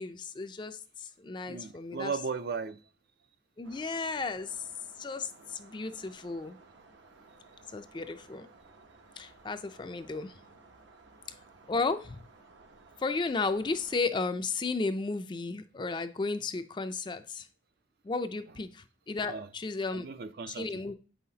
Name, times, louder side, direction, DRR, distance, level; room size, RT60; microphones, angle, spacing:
voice 1, 0.0-2.1 3.6-4.7 5.0-6.6 7.7-8.5 9.2-10.3 11.7-12.2 13.0-17.5 18.0-20.1 20.5-20.9, left 3 dB, 25° left, 0.3 m, -34 dB
voice 2, 1.5-2.8 19.2-19.5 19.9-20.8, right 5 dB, 55° right, 0.4 m, -36 dB
sound 1, 3.6-14.0, right 3 dB, 75° right, 0.8 m, -57 dB
8.2 x 5.6 x 2.7 m
head